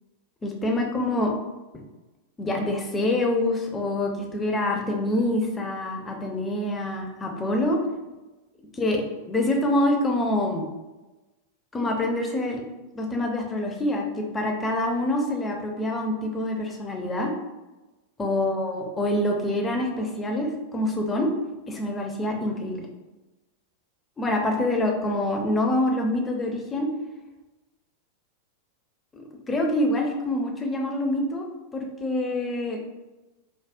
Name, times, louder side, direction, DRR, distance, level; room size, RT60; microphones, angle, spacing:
voice 1, 0.4-1.3 1.7-1.8 2.4-7.8 8.7-9.0 9.3-10.6 11.7-12.6 12.9-17.3 18.2-21.3 21.7-22.9 24.2-26.9 29.1-31.5 31.7-32.8, left 1 dB, 15° left, 1 dB, 0.6 m, -26 dB
4.7 x 2.1 x 2.6 m, 1.1 s
figure-of-eight pair, 90°, 0 cm